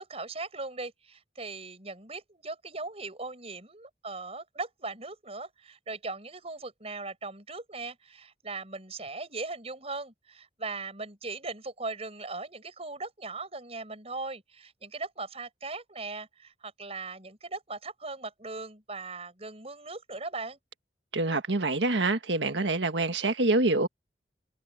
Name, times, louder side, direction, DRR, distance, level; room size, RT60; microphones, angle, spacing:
voice 1, 0.0-20.6, right 3 dB, 35° right, 6.8 m, -39 dB
voice 2, 21.1-23.9, right 2 dB, 85° right, 1.6 m, -26 dB
head